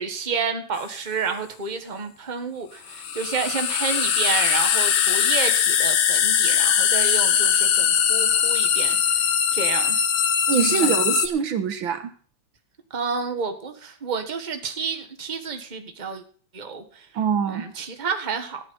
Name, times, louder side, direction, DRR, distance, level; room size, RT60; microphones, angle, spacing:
voice 1, 0.0-9.0 9.5-10.0 10.6-10.9 12.9-16.2 16.5-17.1 17.5-18.6, right 5 dB, 25° right, 6 dB, 1.6 m, -30 dB
sound 1, 0.8-0.9 2.9-11.3, left 8 dB, 80° left, 1.9 m, -21 dB
voice 2, 10.5-12.1 17.1-17.7, right 7 dB, 75° right, 10 dB, 2.0 m, -23 dB
15.0 x 9.6 x 5.6 m, 0.44 s
omnidirectional pair, 2.2 m